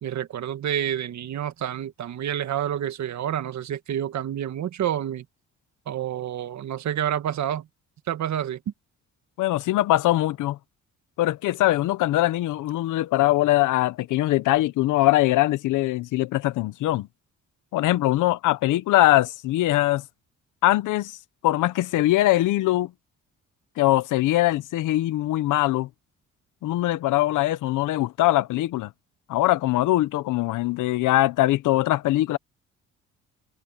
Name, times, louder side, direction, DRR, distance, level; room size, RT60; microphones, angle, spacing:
voice 1, 0.0-5.3 5.9-7.7 8.1-8.6, right 10 dB, 65° right, 1.9 m, -28 dB
voice 2, 9.4-10.6 11.2-17.1 17.7-20.0 20.6-21.2 21.4-22.9 23.8-25.9 26.6-28.9 29.3-32.4, left 16 dB, 85° left, 1.0 m, -22 dB
cardioid pair, 90°, 30 cm